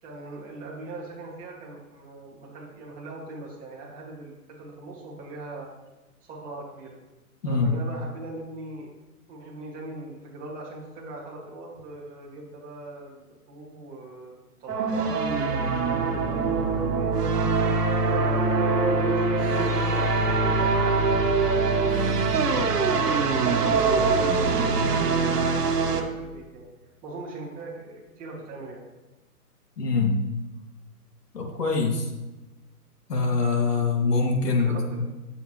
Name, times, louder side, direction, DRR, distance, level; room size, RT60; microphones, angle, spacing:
voice 1, 0.0-5.7 6.2-7.0 7.5-8.9 9.3-14.3 14.6-17.1 18.0-21.2 21.5-26.7 27.0-28.8 34.5-35.0, right 2 dB, 15° right, -4 dB, 2.2 m, -40 dB
voice 2, 7.4-7.7 29.8-30.3 31.3-32.0 33.1-35.0, left 4 dB, 85° left, 0 dB, 2.6 m, -24 dB
sound 1, 14.7-26.0, right 4 dB, 80° right, 1.5 m, -23 dB
sound 2, 19.1-26.5, left 5 dB, 45° left, 0.9 m, -38 dB
9.9 x 7.8 x 3.1 m, 1.1 s
hypercardioid pair, 150°, 46 cm